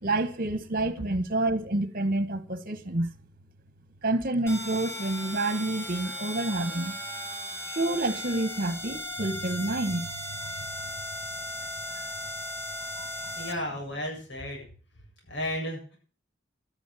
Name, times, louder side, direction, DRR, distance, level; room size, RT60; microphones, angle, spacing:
voice 1, 0.0-3.1 4.0-7.0 7.7-10.1 10.7-10.9 13.0-13.3, right 2 dB, 50° right, 1.6 m, -28 dB
sound 1, 4.5-13.5, equal, 15° left, 2.6 m, -37 dB
voice 2, 13.4-14.6 15.3-16.0, left 1 dB, 70° left, 7.7 m, -33 dB
12.5 x 9.9 x 7.4 m
head